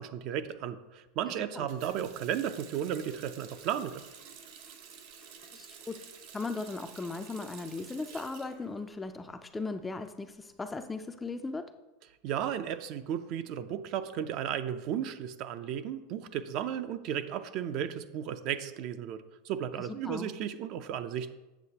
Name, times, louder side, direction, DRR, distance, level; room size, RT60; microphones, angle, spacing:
voice 1, 0.0-4.0 12.2-21.3, right 9 dB, 50° right, 10 dB, 0.5 m, -34 dB
voice 2, 1.3-1.7 5.5-6.0 6.3-11.7 19.8-20.3, left 3 dB, 10° left, 8 dB, 0.4 m, -38 dB
Water tap faucet, 1.7-9.4 9.7-10.8, right 7 dB, 65° right, 1.1 m, -51 dB
8.1 x 7.2 x 2.8 m, 1.1 s
supercardioid pair, 140°, 0 cm